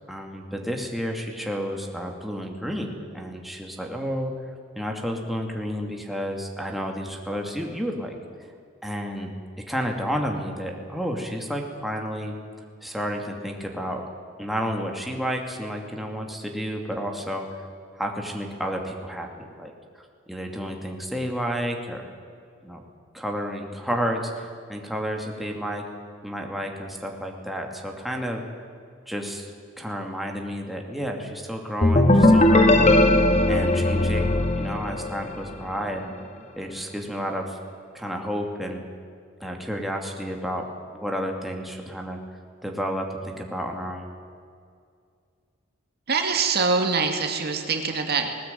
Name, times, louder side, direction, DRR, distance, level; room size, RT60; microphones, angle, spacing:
voice 1, 0.1-4.3 4.7-8.2 8.8-9.3 9.7-12.3 12.8-14.0 14.4-17.5 17.9-19.7 20.3-22.0 22.6-22.8 23.1-25.8 26.2-28.4 29.1-29.5 29.8-33.0 33.5-36.1 36.6-37.6 37.9-38.8 39.4-42.2 42.6-44.1, equal, ahead, 1 dB, 2.5 m, -31 dB
sound 1, 31.8-35.5, left 1 dB, 35° left, 1.7 m, -18 dB
voice 2, 46.1-48.3, right 4 dB, 55° right, 4 dB, 2.4 m, -24 dB
20.0 x 19.5 x 9.3 m, 2.2 s
head